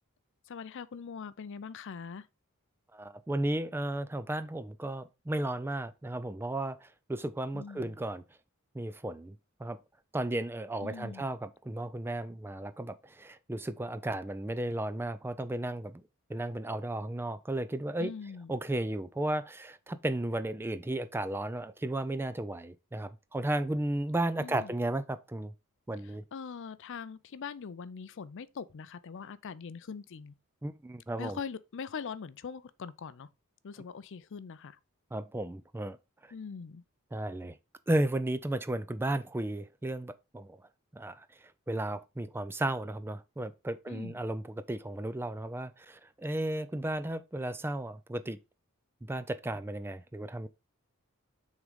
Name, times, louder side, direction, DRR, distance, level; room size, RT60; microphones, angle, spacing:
voice 1, 0.5-2.3 7.5-8.0 10.8-11.3 18.0-18.6 24.4-24.7 26.0-30.3 31.2-33.3 33.6-34.8 36.3-36.8 43.9-44.2, left 6 dB, 60° left, 0.4 m, -42 dB
voice 2, 2.9-8.2 8.7-9.4 9.6-9.8 10.1-16.0 16.3-18.1 18.5-25.5 25.9-26.2 30.6-31.4 35.1-36.0 36.2-36.3 37.1-37.6 37.9-40.6 40.9-41.3 41.7-48.4 49.0-50.5, right 1 dB, 10° right, 0.3 m, -34 dB
6.2 x 3.8 x 4.9 m
head